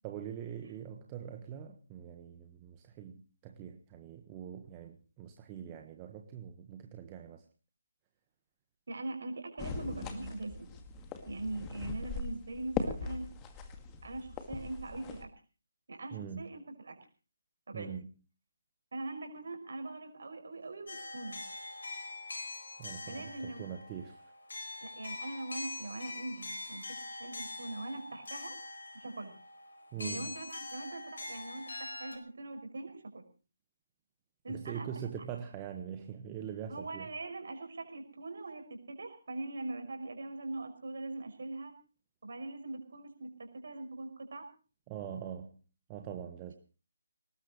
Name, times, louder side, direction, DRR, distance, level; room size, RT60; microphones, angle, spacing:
voice 1, 0.0-7.4 16.1-16.5 17.7-18.1 22.8-24.2 29.9-30.3 34.5-37.1 44.9-45.6 45.9-46.5, right 8 dB, 20° right, 4 dB, 1.4 m, -43 dB
voice 2, 8.9-10.7 11.3-13.2 14.0-15.3 15.9-17.0 17.7-17.9 18.9-21.4 23.1-23.7 24.8-26.9 27.2-28.6 29.0-29.3 30.0-33.2 34.4-34.9 36.7-41.7 42.2-44.5, right 2 dB, 60° right, 6 dB, 5.6 m, -41 dB
sound 1, 9.6-15.2, left 5 dB, 15° left, 2.0 m, -40 dB
sound 2, 20.9-32.2, left 2 dB, 65° left, 5.0 m, -44 dB
21.5 x 19.5 x 3.1 m, 0.37 s
figure-of-eight pair, 150°, 0 cm